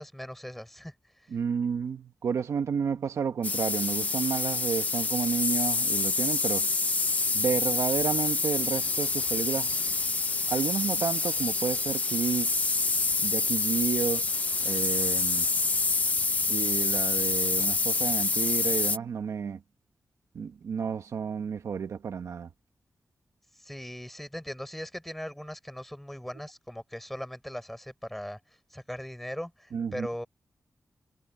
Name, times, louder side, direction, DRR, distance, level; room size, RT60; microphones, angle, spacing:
voice 1, 0.0-1.3 23.6-28.4 28.7-30.3, equal, 5° left, 4.2 m, -39 dB
voice 2, 1.3-6.7 7.3-9.8 10.5-12.5 13.2-14.3 14.6-15.5 16.5-19.6 20.3-22.5 29.7-30.1, right 6 dB, 85° right, 1.4 m, -31 dB
sound 1, 3.4-19.0, left 3 dB, 30° left, 0.8 m, -27 dB
wide cardioid pair, 180°, 5 cm